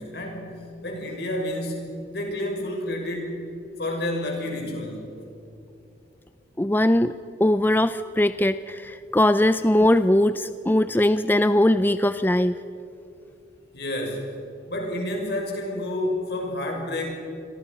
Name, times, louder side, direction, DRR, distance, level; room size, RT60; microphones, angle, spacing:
voice 1, 0.0-3.5 3.8-5.1 13.7-14.3 14.7-17.2, left 1 dB, 60° left, 1 dB, 6.4 m, -30 dB
voice 2, 6.6-7.1 7.4-12.5, left 1 dB, 10° left, 12 dB, 0.4 m, -20 dB
28.5 x 22.5 x 5.6 m, 2.7 s
head